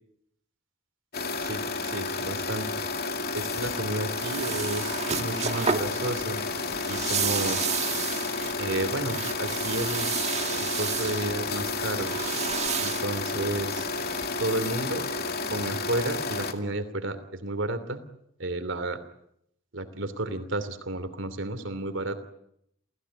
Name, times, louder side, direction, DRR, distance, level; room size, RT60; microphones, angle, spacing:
sound 1, 1.1-16.5, left 3 dB, 50° left, 2.4 m, -31 dB
voice 1, 1.4-2.7 3.3-6.4 6.9-7.6 8.6-10.1 10.6-12.2 12.8-13.9 14.4-15.1 15.4-18.0 18.4-19.0 19.7-22.2, right 2 dB, 65° right, 11 dB, 2.9 m, -32 dB
sound 2, 3.5-14.3, right 6 dB, 35° right, 1.7 m, -33 dB
29.0 x 16.5 x 9.8 m, 0.75 s
head